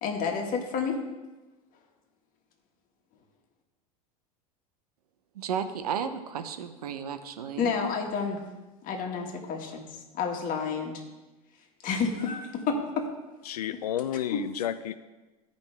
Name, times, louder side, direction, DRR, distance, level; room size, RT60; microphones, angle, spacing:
voice 1, 0.0-1.0 7.6-8.4 8.8-9.9 10.1-11.0 11.8-13.1 14.3-14.4, left 5 dB, 45° left, 2 dB, 1.8 m, -30 dB
voice 2, 5.3-7.7, right 7 dB, 85° right, 9 dB, 0.8 m, -33 dB
voice 3, 13.5-15.0, left 11 dB, 90° left, 14 dB, 0.4 m, -31 dB
15.0 x 5.2 x 3.5 m, 1.1 s
hypercardioid pair, 90°, 19 cm